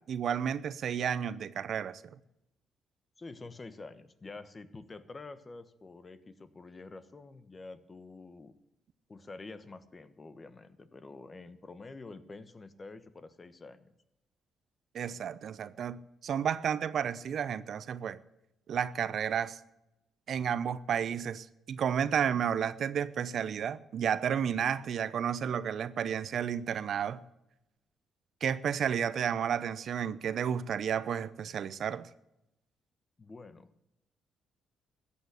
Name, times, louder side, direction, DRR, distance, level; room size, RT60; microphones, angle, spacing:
voice 1, 0.1-2.0 14.9-18.2 18.7-19.6 20.3-27.2 28.4-32.1, right 8 dB, 60° right, 0.7 m, -32 dB
voice 2, 3.2-8.5 9.1-13.9 33.2-33.8, left 3 dB, 30° left, 1.2 m, -48 dB
14.0 x 8.6 x 8.3 m
cardioid pair, 90°, 0 cm